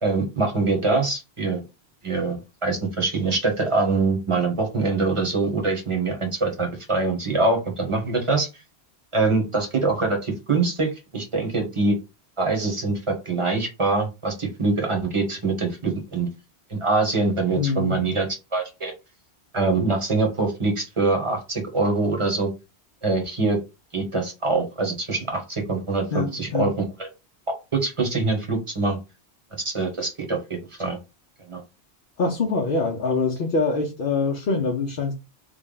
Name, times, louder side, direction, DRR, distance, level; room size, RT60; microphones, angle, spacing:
voice 1, 0.0-1.6 2.0-8.5 9.1-12.0 12.4-16.3 16.7-18.9 19.5-22.5 23.0-23.6 23.9-27.1 27.7-29.0 29.6-30.4 30.8-31.0 31.5-31.6, right 3 dB, 30° right, 1.0 m, -24 dB
voice 2, 17.6-18.0 26.1-26.7 32.2-35.1, left 4 dB, 55° left, 0.8 m, -24 dB
3.4 x 2.2 x 3.8 m
omnidirectional pair, 1.2 m